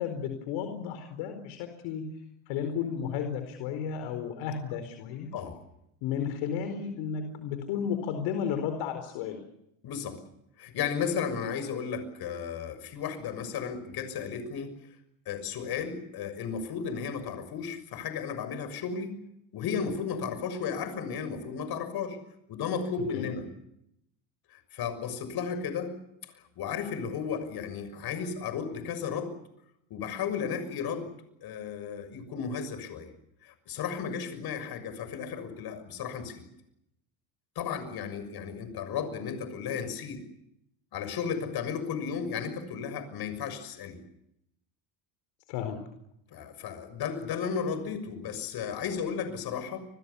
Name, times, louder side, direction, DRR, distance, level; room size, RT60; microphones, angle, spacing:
voice 1, 0.0-2.1 2.5-5.3 6.0-9.4 23.1-23.3 45.5-45.8, left 8 dB, 75° left, 7 dB, 4.5 m, -33 dB
voice 2, 9.8-10.2 10.6-14.7 15.2-19.2 19.5-22.2 22.5-23.5 24.5-25.9 26.3-29.3 29.9-31.1 31.4-33.1 33.4-36.4 37.5-40.2 40.9-44.0 46.3-49.8, left 6 dB, 55° left, 11 dB, 6.7 m, -34 dB
30.0 x 22.0 x 7.0 m, 0.79 s
cardioid pair, 120°, 46 cm